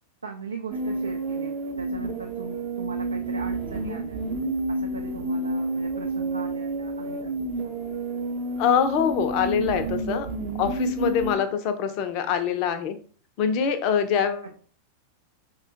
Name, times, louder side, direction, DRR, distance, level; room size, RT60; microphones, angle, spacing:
voice 1, 0.2-4.2 4.7-7.9 14.4-14.5, right 3 dB, 75° right, 2 dB, 0.4 m, -39 dB
sound 1, 0.7-11.4, right 2 dB, 40° right, 0.7 m, -30 dB
voice 2, 8.6-10.3 10.6-13.0 13.4-14.5, left 7 dB, 40° left, 8 dB, 0.5 m, -24 dB
4.8 x 2.2 x 2.6 m, 0.42 s
figure-of-eight pair, 90°, 0 cm